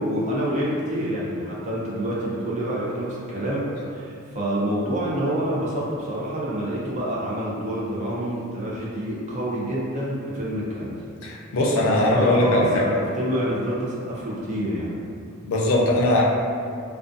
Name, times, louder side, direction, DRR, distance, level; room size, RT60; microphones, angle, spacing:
voice 1, 0.0-3.7 3.9-11.0 12.0-12.9 13.1-14.9, right 1 dB, 35° right, -6 dB, 0.5 m, -27 dB
voice 2, 11.2-12.9 15.4-16.2, left 1 dB, 75° left, -2 dB, 0.4 m, -20 dB
2.4 x 2.2 x 2.5 m, 2.4 s
head